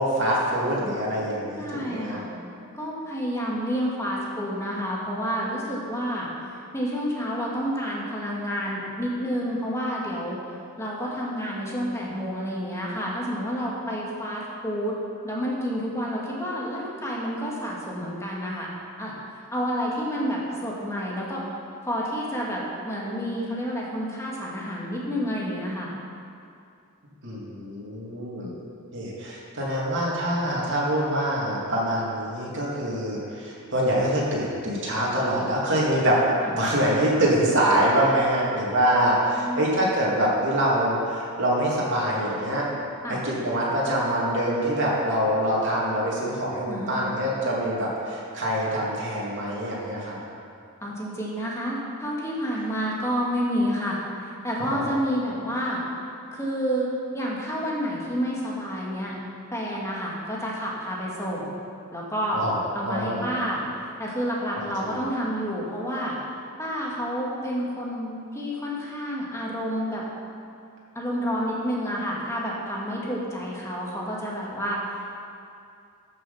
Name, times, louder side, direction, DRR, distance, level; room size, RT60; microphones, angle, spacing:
voice 1, 0.0-2.2 27.2-28.5 28.9-36.2 36.5-42.7 43.1-50.2 62.3-62.6 62.9-63.2 64.8-64.9, right 1 dB, 55° right, -5 dB, 2.8 m, -25 dB
voice 2, 1.6-2.3 2.7-6.3 6.7-10.4 10.8-15.0 15.2-18.7 19.0-19.1 19.5-21.4 21.8-25.9 36.4-36.6 39.3-39.7 43.0-43.2 46.7-47.0 50.8-55.8 56.3-59.1 59.5-61.5 61.9-62.4 62.7-66.2 66.6-70.0 71.0-75.0, equal, 15° left, -4 dB, 2.0 m, -29 dB
13.5 x 6.4 x 5.7 m, 2.5 s
head